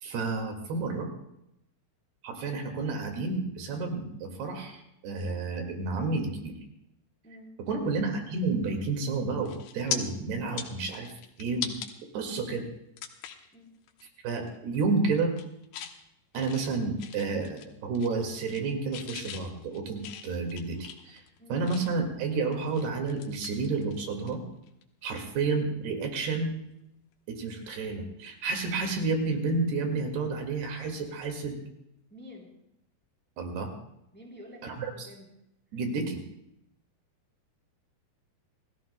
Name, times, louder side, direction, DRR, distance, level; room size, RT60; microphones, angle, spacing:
voice 1, 0.0-1.1 2.2-6.6 7.7-11.1 11.4-11.7 12.1-12.7 14.2-15.3 16.3-21.2 21.5-24.4 25.0-26.6 27.3-31.6 33.4-33.7 34.6-35.1 35.7-36.2, right 3 dB, 80° right, 3 dB, 4.1 m, -30 dB
sound 1, 8.9-9.1 9.5-10.0 10.4-11.9 12.4-12.5 13.0-13.5 13.9-14.1 14.4-14.8 15.2-16.0 16.3-17.7 17.9-18.7 18.9-22.1 22.5-24.3 24.6-24.8 26.7-26.9, left 9 dB, 80° left, 3.0 m, -40 dB
voice 2, 32.1-32.5 34.1-35.3, left 1 dB, 5° left, -1 dB, 2.7 m, -49 dB
29.5 x 15.0 x 2.2 m, 0.80 s
omnidirectional pair, 4.6 m